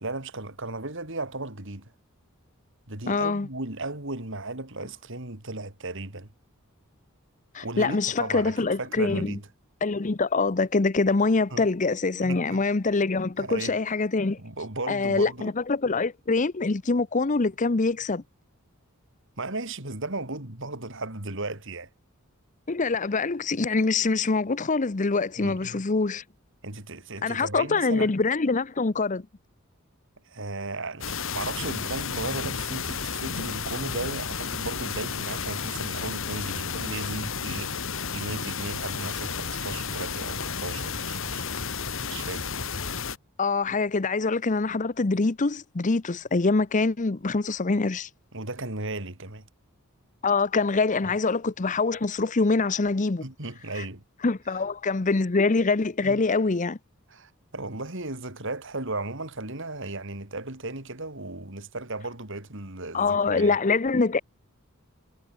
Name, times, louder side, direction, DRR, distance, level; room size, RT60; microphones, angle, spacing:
voice 1, 0.0-1.9 2.9-6.3 7.6-9.5 11.5-11.7 12.2-12.6 13.4-13.7 14.4-15.5 19.4-21.9 25.4-25.8 26.6-28.1 30.3-41.7 42.0-42.5 48.3-49.5 53.2-54.0 54.5-54.6 56.0-56.2 57.1-63.6, right 2 dB, 60° right, 3.8 m, -35 dB
voice 2, 3.1-3.5 7.5-9.3 9.8-14.4 14.9-18.2 22.7-26.2 27.2-29.2 43.4-48.1 50.2-53.2 53.8-53.9 54.2-56.8 62.9-64.2, left 3 dB, 35° left, 0.7 m, -24 dB
sound 1, 31.0-43.2, left 6 dB, 65° left, 2.3 m, -32 dB
head